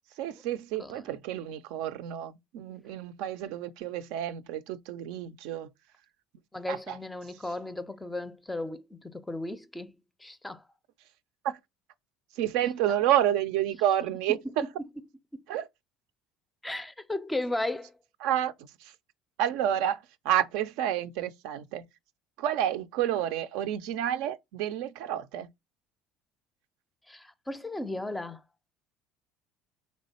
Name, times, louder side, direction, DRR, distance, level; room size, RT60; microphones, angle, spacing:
voice 1, 0.2-5.7 6.7-7.0 11.4-11.6 12.4-14.6 15.5-15.7 18.2-18.5 18.8-18.9 19.4-20.0 20.2-21.8 22.4-25.5, right 11 dB, 75° right, 0.4 m, -29 dB
voice 2, 6.5-10.7 15.3-15.5 16.6-17.9 27.1-28.4, left 2 dB, 10° left, 0.4 m, -35 dB
3.6 x 3.2 x 4.1 m
supercardioid pair, 95°, 0 cm